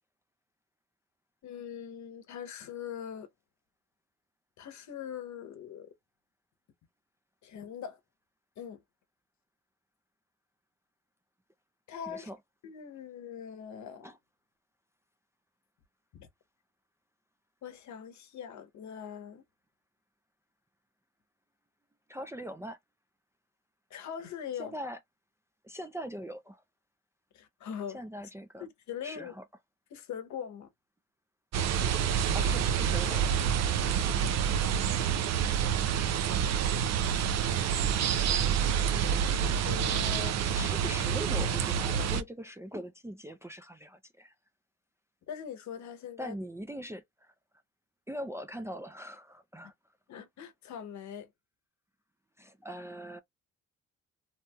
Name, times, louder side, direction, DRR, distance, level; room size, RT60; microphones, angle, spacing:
voice 1, 1.4-3.3 4.6-5.9 7.4-8.0 8.6-8.8 11.9-12.3 12.6-14.1 16.1-16.3 17.6-19.4 23.9-24.7 27.3-28.0 28.9-29.3 29.9-30.7 34.2-35.0 39.6-40.4 45.3-46.3 50.1-51.3, left 8 dB, 70° left, 0.9 m, -42 dB
voice 2, 12.1-12.4 14.0-14.1 22.1-22.8 24.6-25.0 25.6-26.6 27.9-28.6 29.0-29.4 32.3-33.2 40.5-44.3 46.2-47.3 48.1-49.7 52.4-53.2, equal, 10° right, 0.4 m, -41 dB
sound 1, 31.5-42.2, right 8 dB, 60° right, 0.5 m, -28 dB
2.9 x 2.8 x 2.2 m
cardioid pair, 90°, 30 cm